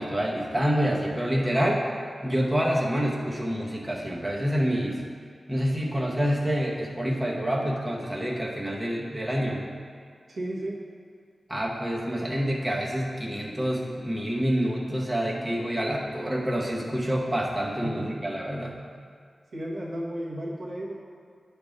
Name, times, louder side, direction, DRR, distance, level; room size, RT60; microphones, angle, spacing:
voice 1, 0.0-1.8 2.2-5.0 5.5-9.7 11.5-18.7, equal, 15° right, -4 dB, 1.0 m, -27 dB
voice 2, 10.3-10.8 17.8-18.1 19.5-20.9, right 1 dB, 75° right, -5 dB, 1.4 m, -33 dB
9.4 x 3.5 x 5.1 m, 2.1 s
wide cardioid pair, 90°, 0 cm